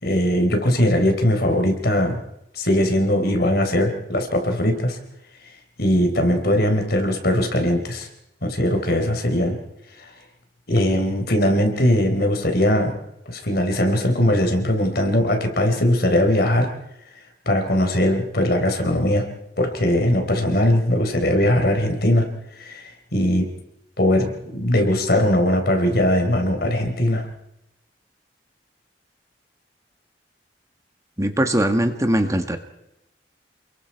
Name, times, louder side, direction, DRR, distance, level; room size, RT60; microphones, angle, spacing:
voice 1, 0.0-2.2 2.5-5.0 5.8-8.1 8.4-9.6 10.7-12.9 13.3-16.7 17.5-19.2 19.6-22.3 22.6-23.5 24.0-27.2, left 1 dB, 60° left, 5 dB, 4.1 m, -20 dB
voice 2, 31.2-32.6, right 1 dB, 20° right, 6 dB, 1.5 m, -20 dB
29.0 x 22.0 x 4.6 m, 0.85 s
head